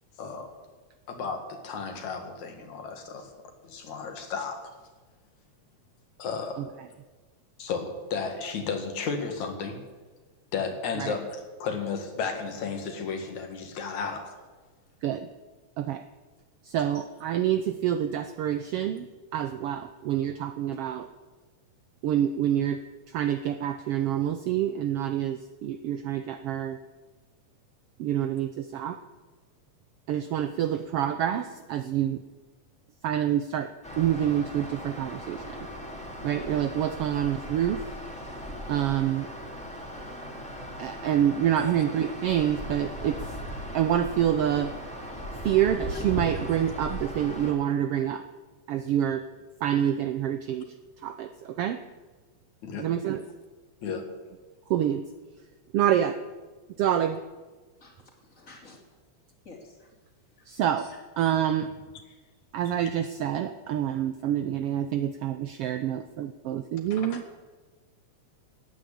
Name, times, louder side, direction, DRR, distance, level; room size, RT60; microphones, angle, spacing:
voice 1, 0.2-0.5 1.1-3.3 3.6-4.6 6.2-6.6 7.6-9.8 10.5-14.3 41.6-41.7 52.6-52.9 53.8-54.0 66.9-67.2, left 5 dB, 75° left, 5 dB, 3.3 m, -33 dB
voice 2, 16.6-19.1 19.3-21.1 22.0-22.8 23.1-26.8 28.0-29.0 30.1-32.2 33.0-33.7 34.0-35.7 36.2-37.8 38.7-39.3 40.8-43.4 43.7-44.7 45.4-48.2 48.7-49.2 49.6-50.7 51.0-51.8 52.8-53.2 54.7-55.1 55.7-56.2 56.8-57.2 60.5-60.9 61.2-61.7 62.5-67.2, right 10 dB, 75° right, 10 dB, 1.4 m, -27 dB
sound 1, 33.8-47.5, equal, ahead, 2.4 m, -38 dB
voice 3, 57.8-58.8 59.4-59.9 60.4-60.5 60.8-61.0, left 3 dB, 25° left, 2 dB, 3.0 m, -51 dB
17.5 x 9.4 x 8.5 m, 1.3 s
omnidirectional pair, 3.3 m